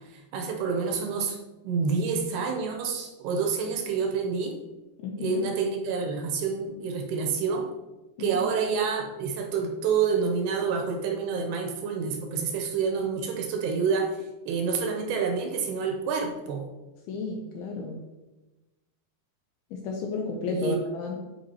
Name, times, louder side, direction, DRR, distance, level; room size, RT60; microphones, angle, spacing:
voice 1, 0.0-1.4 1.6-4.6 5.2-7.7 8.2-16.7 20.5-20.8, right 5 dB, 75° right, 3 dB, 2.6 m, -28 dB
voice 2, 5.0-5.5 8.2-8.3 17.1-18.0 19.7-21.2, left 4 dB, 80° left, 2 dB, 2.3 m, -32 dB
10.0 x 5.0 x 2.9 m, 1.1 s
omnidirectional pair, 4.9 m